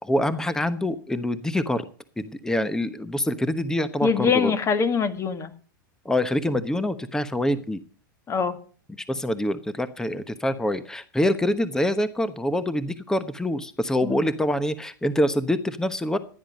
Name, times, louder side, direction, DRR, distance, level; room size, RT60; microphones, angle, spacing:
voice 1, 0.0-1.8 2.2-4.5 6.0-7.8 9.1-16.2, left 1 dB, 5° left, 14 dB, 1.0 m, -25 dB
voice 2, 4.0-5.5 8.3-8.6 14.0-14.2, left 6 dB, 25° left, 11 dB, 1.7 m, -23 dB
15.5 x 10.0 x 5.2 m, 0.40 s
hypercardioid pair, 100°, 11 cm